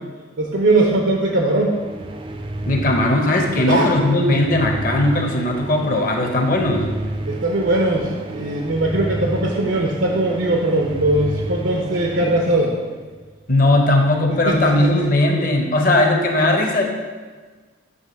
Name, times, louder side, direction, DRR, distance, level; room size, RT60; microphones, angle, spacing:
voice 1, 0.4-1.8 3.7-3.9 7.3-12.7 14.3-15.1, right 2 dB, 85° right, -1 dB, 0.7 m, -20 dB
sound 1, 1.5-13.3, right 1 dB, 30° right, 0.4 m, -31 dB
voice 2, 2.6-6.9 13.5-16.8, left 1 dB, 45° left, 2 dB, 0.8 m, -18 dB
8.0 x 3.0 x 5.2 m, 1.4 s
head